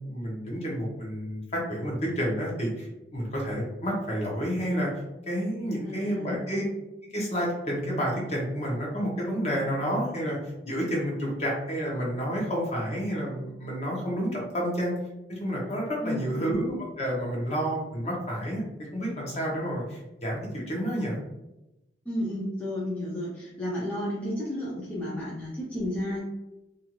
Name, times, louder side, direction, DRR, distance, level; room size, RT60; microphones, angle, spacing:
voice 1, 0.0-4.9 5.3-6.6 7.1-10.4 10.6-14.9 15.3-18.6 18.9-21.2, equal, 35° left, -3 dB, 0.8 m, -30 dB
voice 2, 5.8-6.5 16.0-16.5 22.1-26.2, left 1 dB, 10° left, -7 dB, 0.5 m, -32 dB
2.6 x 2.4 x 2.9 m, 0.96 s
head